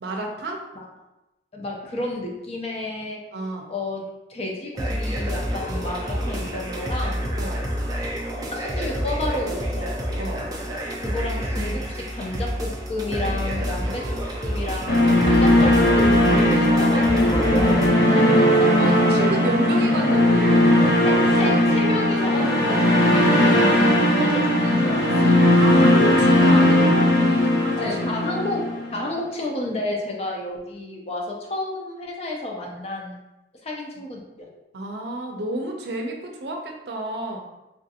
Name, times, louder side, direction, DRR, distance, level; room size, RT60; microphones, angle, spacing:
voice 1, 0.0-0.6 3.3-3.7 7.4-7.7 10.2-10.5 18.1-21.3 25.6-27.9 29.7-29.8 34.7-37.4, right 2 dB, 70° right, 2 dB, 0.5 m, -31 dB
voice 2, 1.5-3.2 3.7-7.3 8.5-9.9 11.0-18.7 21.0-25.4 27.8-28.6 28.9-33.2 33.6-34.5, left 1 dB, 35° left, -1 dB, 0.5 m, -31 dB
sound 1, 4.8-17.9, equal, 20° right, 0.4 m, -28 dB
sound 2, 14.9-29.0, left 1 dB, 75° left, 1.0 m, -18 dB
3.5 x 2.5 x 2.7 m, 0.98 s
head